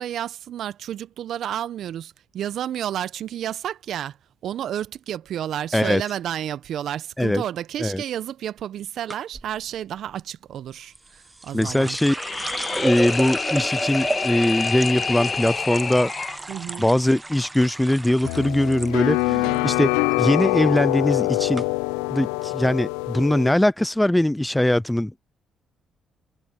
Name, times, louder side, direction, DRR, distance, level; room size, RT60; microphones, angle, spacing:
voice 1, 0.0-4.2 4.4-12.0 16.5-16.9 19.3-19.7, right 10 dB, 65° right, 1.2 m, -31 dB
sound 1, 9.1-9.5 10.9-18.9 19.2-19.8 20.1-20.5 21.1-21.2 21.5-21.6, right 2 dB, 20° right, 1.4 m, -32 dB
voice 2, 11.5-12.2 12.7-16.1 16.8-19.9 20.2-21.6 22.1-25.1, left 1 dB, 10° left, 0.5 m, -21 dB
sound 2, 12.0-16.4, left 5 dB, 45° left, 1.7 m, -28 dB
sound 3, 18.2-23.5, left 24 dB, 85° left, 0.7 m, -24 dB
hypercardioid pair, 50°, 0 cm